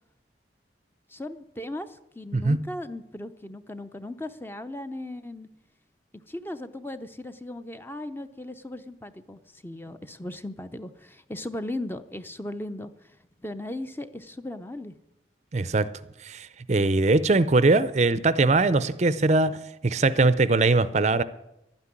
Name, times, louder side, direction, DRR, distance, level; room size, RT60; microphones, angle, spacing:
voice 1, 1.1-5.5 6.3-14.9, left 1 dB, 10° left, 0.6 m, -37 dB
voice 2, 15.5-15.9 16.2-19.6 19.8-21.2, right 3 dB, 35° right, 0.5 m, -21 dB
12.0 x 9.7 x 9.8 m
head